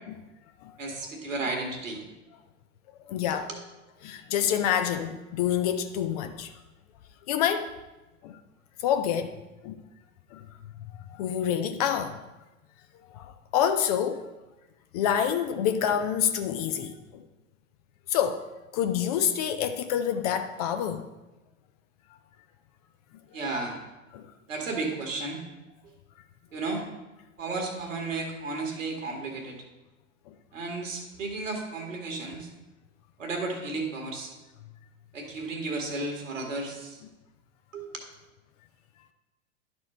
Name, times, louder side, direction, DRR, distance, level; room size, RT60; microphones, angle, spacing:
voice 1, 0.8-2.1 3.3-3.6 23.3-23.8 24.5-25.4 26.5-26.9 27.4-29.6 30.5-32.5 33.2-34.3 35.1-37.0 37.7-37.9, right 3 dB, 70° right, 2 dB, 1.8 m, -33 dB
voice 2, 3.1-3.5 4.0-6.5 7.3-7.7 8.2-8.3 8.8-9.3 9.6-9.8 10.3-10.4 11.1-12.2 13.1-14.2 14.9-17.2 18.1-18.5 18.7-21.1 23.4-23.5 24.1-24.2, left 9 dB, 30° left, 8 dB, 0.4 m, -27 dB
11.5 x 4.3 x 4.3 m, 1.1 s
figure-of-eight pair, 90°, 40 cm